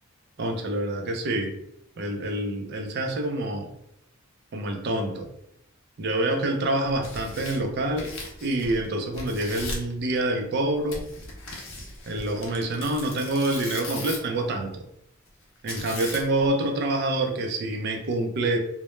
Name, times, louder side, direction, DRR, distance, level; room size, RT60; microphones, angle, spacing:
voice 1, 0.4-1.6 2.0-3.7 4.5-5.3 6.0-8.1 8.4-11.1 12.1-14.8 15.6-18.6, right 1 dB, 50° right, 3 dB, 0.4 m, -27 dB
Tearing, 6.8-8.9 9.1-9.9 10.9-14.4 15.7-16.5, left 2 dB, 65° left, 0.6 m, -38 dB
2.1 x 2.0 x 3.0 m, 0.78 s
head